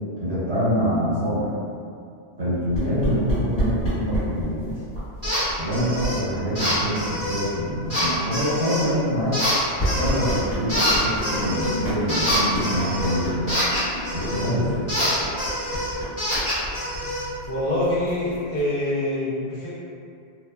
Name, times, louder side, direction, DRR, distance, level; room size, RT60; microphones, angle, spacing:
voice 1, 0.2-1.5 2.4-4.8 5.6-9.4 9.9-13.5 14.1-14.9, equal, 80° right, -13 dB, 1.5 m, -25 dB
sound 1, 2.7-18.8, equal, 40° left, 1.1 m, -32 dB
sound 2, 5.2-5.4 5.7-6.2 6.6-7.5 7.9-8.9 9.3-10.4 10.7-14.5 14.9-17.3, equal, 35° right, 1.1 m, -26 dB
voice 2, 17.5-19.8, left 1 dB, 60° left, -8 dB, 0.8 m, -26 dB
2.9 x 2.2 x 2.2 m, 2.3 s
omnidirectional pair, 1.1 m